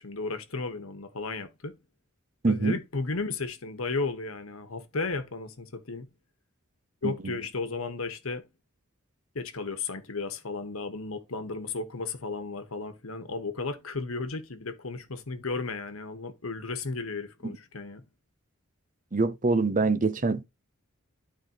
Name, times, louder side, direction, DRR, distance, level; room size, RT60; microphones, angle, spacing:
voice 1, 0.0-1.8 2.5-6.1 7.0-8.4 9.3-18.0, left 3 dB, 80° left, 1.3 m, -34 dB
voice 2, 2.4-2.8 7.0-7.3 17.4-17.5 19.1-20.4, right 3 dB, 40° right, 0.7 m, -25 dB
12.0 x 4.4 x 3.0 m
head